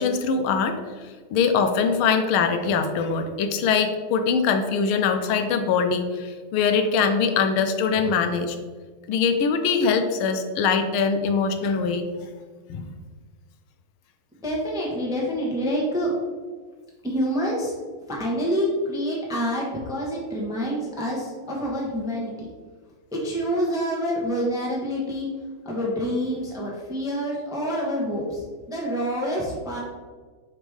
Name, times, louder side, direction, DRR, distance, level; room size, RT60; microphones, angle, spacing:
voice 1, 0.0-8.6 9.1-12.1 12.7-12.9, left 5 dB, 80° left, 7 dB, 1.5 m, -23 dB
voice 2, 14.4-16.1 17.0-17.7 18.1-22.3 23.1-25.3 25.6-29.8, equal, 5° right, -4 dB, 0.8 m, -27 dB
5.0 x 4.2 x 4.8 m, 1.5 s
omnidirectional pair, 2.3 m